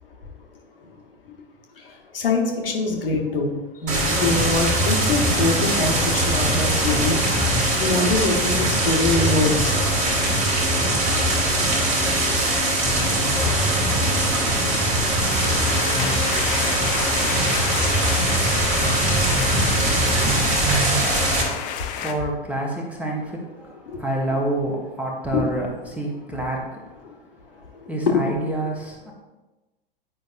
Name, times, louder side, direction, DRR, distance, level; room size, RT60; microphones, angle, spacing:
voice 1, 2.1-3.6 3.8-6.0 6.2-7.2 7.8-9.7 25.3-25.4, left 3 dB, 70° left, 0 dB, 1.2 m, -23 dB
sound 1, 3.9-21.4, right 1 dB, 25° right, 1.7 m, -21 dB
sound 2, 15.2-22.1, left 8 dB, 25° left, 0.5 m, -30 dB
voice 2, 22.0-23.7 24.0-26.8 27.9-29.1, right 1 dB, 5° right, -2 dB, 1.0 m, -27 dB
9.0 x 5.2 x 2.5 m, 1.1 s
figure-of-eight pair, 95°, 30 cm